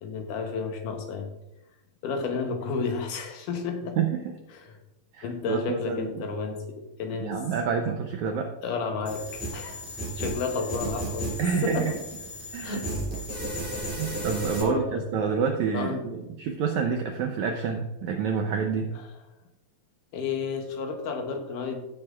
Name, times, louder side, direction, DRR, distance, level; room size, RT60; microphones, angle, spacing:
voice 1, 0.0-1.3 2.0-4.0 4.5-4.8 5.2-7.4 8.6-9.8 10.2-12.0 12.6-13.1 14.6-15.0 15.7-16.1 20.1-21.9, left 5 dB, 70° left, 4 dB, 2.3 m, -32 dB
voice 2, 4.0-4.3 5.1-6.3 7.2-8.5 11.4-11.9 12.5-12.8 14.0-18.9, right 6 dB, 80° right, 4 dB, 1.7 m, -28 dB
sound 1, 9.0-14.6, right 1 dB, 5° right, 2.4 m, -34 dB
15.5 x 7.2 x 2.4 m, 0.99 s
omnidirectional pair, 4.2 m